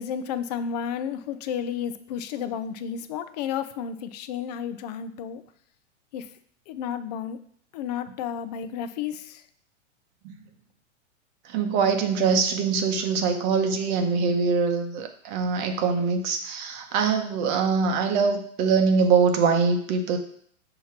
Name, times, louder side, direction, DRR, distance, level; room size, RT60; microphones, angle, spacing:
voice 1, 0.0-5.4 6.1-6.3 6.7-7.4 7.7-9.4, left 8 dB, 35° left, 11 dB, 0.4 m, -32 dB
voice 2, 11.5-20.2, right 5 dB, 40° right, 5 dB, 0.8 m, -23 dB
6.2 x 2.9 x 5.7 m, 0.62 s
hypercardioid pair, 140°, 37 cm